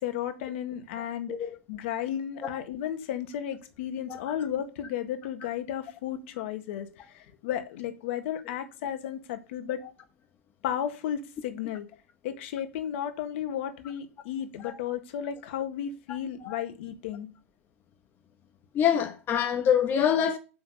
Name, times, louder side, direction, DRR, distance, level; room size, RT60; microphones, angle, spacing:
voice 1, 0.0-9.8 10.6-11.9 12.2-17.3, left 10 dB, 60° left, 1.7 m, -34 dB
voice 2, 18.7-20.4, left 8 dB, 30° left, 1.2 m, -25 dB
6.9 x 6.0 x 6.8 m
hypercardioid pair, 115°, 7 cm